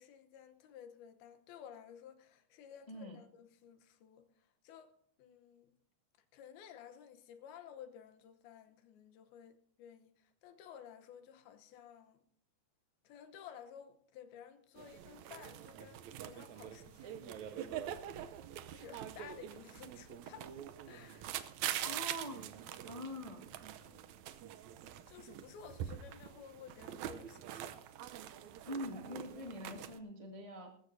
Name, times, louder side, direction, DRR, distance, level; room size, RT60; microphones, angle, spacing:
voice 1, 0.0-4.3 4.6-4.9 5.2-5.7 6.3-12.2 13.0-17.9 18.7-20.5 20.9-21.5 21.9-22.0 22.3-22.4 23.8-24.2 25.1-27.7, left 8 dB, 90° left, 3.0 m, -54 dB
voice 2, 2.9-3.2 21.8-22.5 22.9-23.5 28.6-30.7, equal, 45° left, 0.4 m, -44 dB
sound 1, 14.8-30.0, right 11 dB, 90° right, 1.6 m, -45 dB
20.5 x 15.0 x 2.7 m
omnidirectional pair, 4.3 m